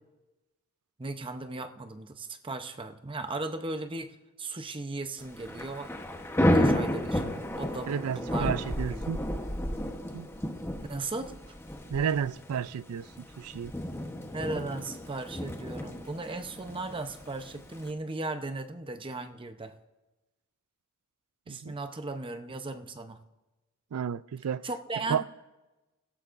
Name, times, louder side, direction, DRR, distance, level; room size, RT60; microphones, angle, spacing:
voice 1, 1.0-5.9 6.4-7.2 7.6-8.5 8.9-9.0 10.9-11.6 14.3-19.7 21.5-23.2 24.6-25.2, right 2 dB, 25° right, 0.7 m, -37 dB
Thunder / Rain, 5.2-17.9, left 1 dB, 10° left, 1.0 m, -32 dB
voice 2, 7.9-9.2 10.1-10.3 11.9-13.1 13.4-13.7 21.5-21.8 23.9-24.7 25.1-25.2, right 7 dB, 85° right, 0.4 m, -31 dB
28.0 x 16.5 x 2.6 m
head